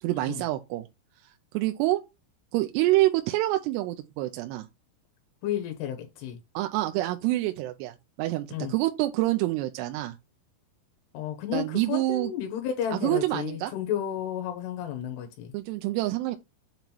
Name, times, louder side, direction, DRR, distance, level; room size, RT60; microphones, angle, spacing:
voice 1, 0.0-0.9 1.2-2.0 2.5-4.7 6.5-10.2 11.5-12.3 12.9-13.7 15.5-16.4, right 17 dB, 90° right, 2.7 m, -27 dB
voice 2, 5.4-6.4 8.5-8.7 11.1-15.5, left 10 dB, 85° left, 3.0 m, -32 dB
7.4 x 2.9 x 5.3 m
omnidirectional pair, 4.7 m